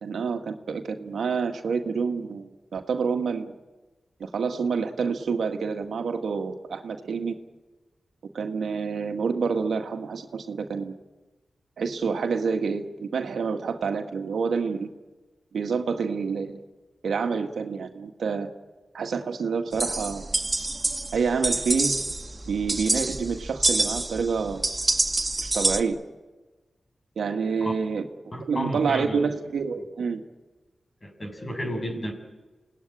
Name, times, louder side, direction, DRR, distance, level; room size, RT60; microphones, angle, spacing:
voice 1, 0.0-3.5 4.2-7.4 8.3-11.0 11.8-14.9 15.5-16.6 17.0-18.5 18.9-20.3 21.1-21.9 22.4-24.7 25.4-26.0 27.2-28.0 28.5-30.2, right 5 dB, 85° right, 5 dB, 1.7 m, -28 dB
sound 1, 19.7-25.8, right 2 dB, 30° right, 1.7 m, -27 dB
voice 2, 28.3-29.2 31.0-32.1, equal, 35° left, 4 dB, 7.3 m, -32 dB
27.5 x 18.5 x 10.0 m, 1.2 s
cardioid pair, 50°, 0 cm